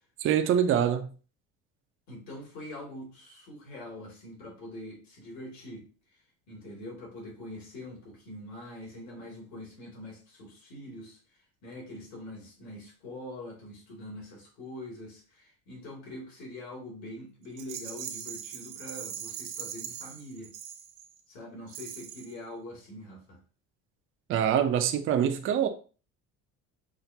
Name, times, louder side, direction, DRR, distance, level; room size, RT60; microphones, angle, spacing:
voice 1, 0.2-1.1 24.3-25.7, right 9 dB, 40° right, 0.5 m, -24 dB
voice 2, 2.1-5.9 6.5-11.2 11.6-20.5 21.3-23.4, left 1 dB, 60° left, 2.2 m, -44 dB
Rattle, 17.6-21.2 21.7-22.4, right 9 dB, 75° right, 0.8 m, -41 dB
5.8 x 2.5 x 2.7 m
cardioid pair, 130°, 32 cm